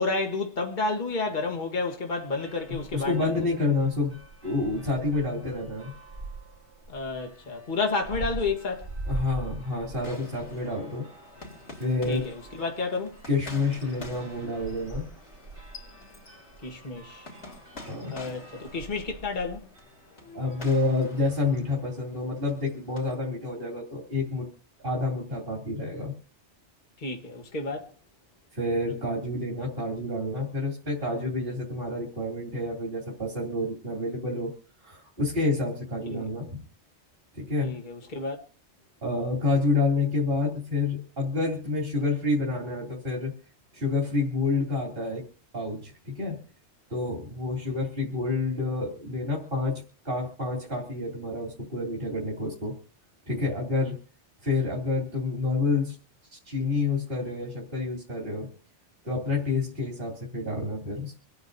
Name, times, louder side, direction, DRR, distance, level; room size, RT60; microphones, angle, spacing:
voice 1, 0.0-3.3 6.9-8.9 12.0-13.2 16.6-17.3 18.1-19.7 20.2-20.4 27.0-27.9 36.1-36.3 37.6-38.3, left 3 dB, 45° left, 1.7 m, -31 dB
sound 1, 2.2-21.6, right 2 dB, 65° right, 3.7 m, -43 dB
voice 2, 2.7-4.2 4.4-5.9 9.1-11.0 11.8-12.2 13.2-15.1 17.9-18.1 20.3-24.5 24.8-26.1 28.5-34.5 34.8-36.6 37.3-37.7 39.0-43.3 43.7-45.2 45.5-46.4 46.9-52.7 53.3-54.0 54.4-55.9 56.4-58.5 59.0-61.2, left 3 dB, 50° right, 3.5 m, -28 dB
sound 2, 10.0-23.2, left 3 dB, 70° left, 3.7 m, -47 dB
26.5 x 9.6 x 2.7 m
omnidirectional pair, 1.2 m